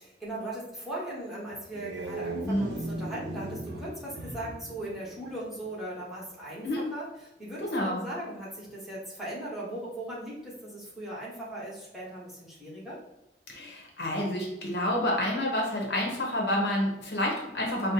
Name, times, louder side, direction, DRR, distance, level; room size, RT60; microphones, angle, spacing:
voice 1, 0.0-7.1 7.4-13.0, right 1 dB, ahead, -8 dB, 1.1 m, -38 dB
sound 1, 1.5-5.7, right 2 dB, 75° right, 0.6 m, -38 dB
voice 2, 7.6-8.0 13.5-17.9, left 1 dB, 65° left, -1 dB, 0.9 m, -29 dB
5.2 x 2.0 x 2.8 m, 0.90 s
head